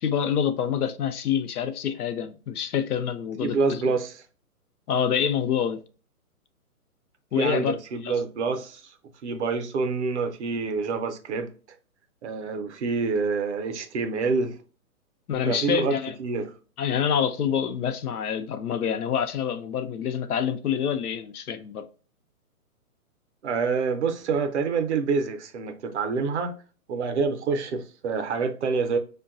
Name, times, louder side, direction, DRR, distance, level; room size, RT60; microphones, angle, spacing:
voice 1, 0.0-3.8 4.9-5.8 7.3-7.7 8.0-8.1 15.3-16.1 16.8-21.9, left 8 dB, 80° left, 0.6 m, -26 dB
voice 2, 3.4-4.2 7.4-8.9 9.2-11.5 12.2-14.6 15.5-16.5 23.4-26.6 26.9-29.0, right 4 dB, 50° right, 0.5 m, -27 dB
5.2 x 2.2 x 2.4 m
hypercardioid pair, 145°, 45 cm